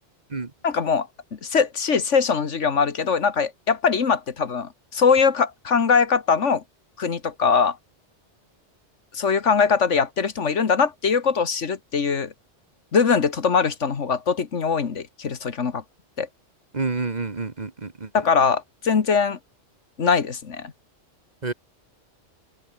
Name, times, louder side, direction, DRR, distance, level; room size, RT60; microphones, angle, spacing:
voice 1, 0.6-6.6 7.0-7.8 9.1-12.3 12.9-15.8 16.2-16.3 18.1-19.4 20.0-20.7, left 5 dB, 75° left, 1.9 m, -22 dB
voice 2, 16.7-18.1 21.4-21.5, right 3 dB, 35° right, 1.6 m, -28 dB
open air
omnidirectional pair, 1.2 m